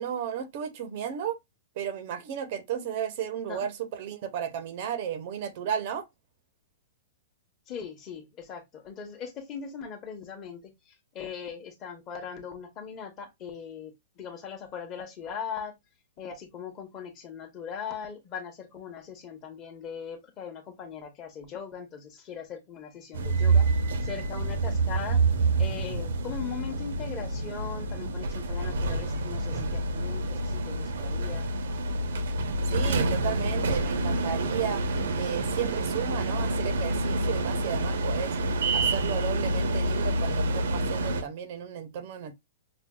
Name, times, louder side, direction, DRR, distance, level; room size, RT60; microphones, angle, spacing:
voice 1, 0.0-1.4 1.8-6.0 32.7-34.9 35.2-38.4 38.7-42.3, right 8 dB, 40° right, 0.6 m, -34 dB
voice 2, 7.7-15.7 16.2-25.2 25.6-31.5, left 7 dB, 25° left, 0.9 m, -40 dB
sound 1, 23.1-41.2, right 2 dB, 85° right, 0.7 m, -27 dB
5.9 x 2.2 x 2.2 m
hypercardioid pair, 170°, 0 cm